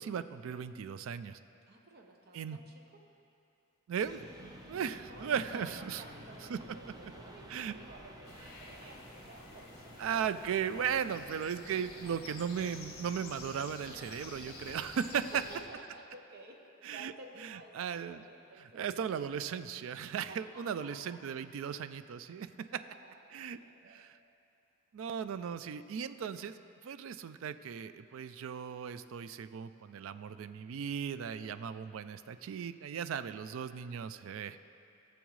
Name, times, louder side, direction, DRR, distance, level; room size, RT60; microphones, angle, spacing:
voice 1, 0.0-1.4 2.3-2.6 3.9-4.2 4.7-6.0 6.5-6.6 7.5-7.7 10.0-15.1 16.8-17.1 17.4-18.2 18.7-22.5 23.3-23.6 23.8-24.2 24.9-26.6 26.8-34.6, right 7 dB, 65° right, 12 dB, 0.3 m, -37 dB
voice 2, 1.7-3.0 4.8-10.3 10.9-11.4 12.0-12.3 14.5-14.8 15.1-18.8 20.3-21.2 22.7-24.1, right 2 dB, 50° right, 2 dB, 0.9 m, -53 dB
sound 1, 4.0-15.7, equal, 20° right, 0.7 m, -53 dB
sound 2, 8.2-15.6, left 3 dB, 50° left, 1.1 m, -51 dB
15.5 x 7.1 x 3.1 m, 2.7 s
head